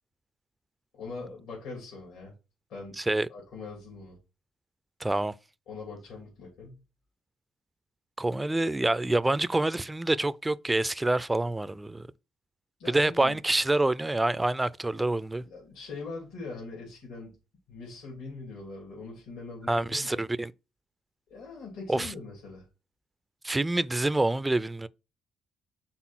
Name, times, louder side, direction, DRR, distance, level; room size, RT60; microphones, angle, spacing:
voice 1, 0.9-2.3 2.7-3.0 3.3-4.2 5.7-6.8 12.8-13.4 15.4-17.4 17.7-20.2 21.3-22.6, left 3 dB, 80° left, 3.1 m, -42 dB
voice 2, 3.0-3.3 5.0-5.3 8.2-12.0 12.9-15.4 19.7-20.5 21.9-22.1 23.4-24.9, right 2 dB, 15° right, 0.4 m, -27 dB
6.1 x 3.7 x 6.0 m
supercardioid pair, 60°, 0 cm